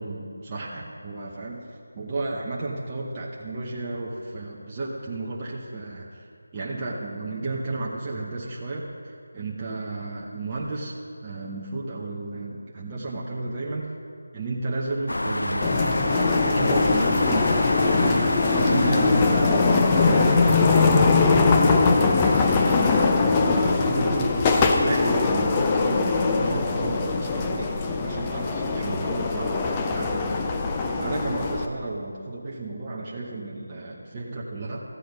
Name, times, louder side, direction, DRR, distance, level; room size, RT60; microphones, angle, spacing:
voice 1, 0.0-1.6 1.9-6.3 6.5-10.9 11.2-13.9 14.3-17.5 18.0-18.3 18.5-22.9 23.4-27.7 28.0-34.8, right 2 dB, 20° right, -4 dB, 0.9 m, -32 dB
sound 1, 15.1-23.1, left 1 dB, 90° left, 0.7 m, -29 dB
sound 2, 15.6-31.7, left 4 dB, 15° left, 0.5 m, -21 dB
13.5 x 8.4 x 5.3 m, 2.3 s
figure-of-eight pair, 170°, 0 cm